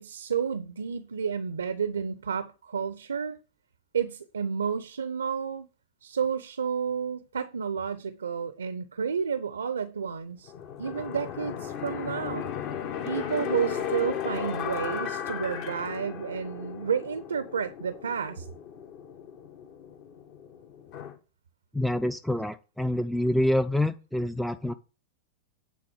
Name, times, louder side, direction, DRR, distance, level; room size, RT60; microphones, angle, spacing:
voice 1, 0.0-3.4 3.9-5.7 6.0-10.5 10.8-12.5 13.0-18.5, right 7 dB, 70° right, 0.6 m, -31 dB
sound 1, 10.5-21.1, left 8 dB, 45° left, 1.2 m, -36 dB
voice 2, 21.7-24.7, left 1 dB, ahead, 0.4 m, -26 dB
9.2 x 4.0 x 7.3 m
figure-of-eight pair, 90°, 0 cm